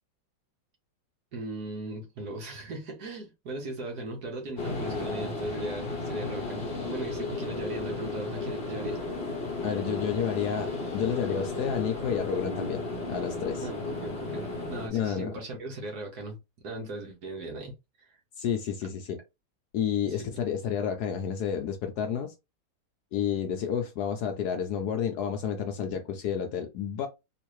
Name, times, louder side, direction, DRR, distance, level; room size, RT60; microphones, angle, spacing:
voice 1, 1.3-9.0 13.6-16.4 16.6-17.7 18.1-18.2 20.0-20.4, right 2 dB, 60° right, 1.5 m, -38 dB
sound 1, 4.6-14.9, left 3 dB, 45° left, 0.9 m, -34 dB
voice 2, 9.6-12.8 13.1-13.7 14.9-15.4 18.4-19.2 19.7-22.3 23.1-27.1, left 8 dB, 70° left, 1.0 m, -30 dB
3.8 x 2.5 x 3.1 m
omnidirectional pair, 2.0 m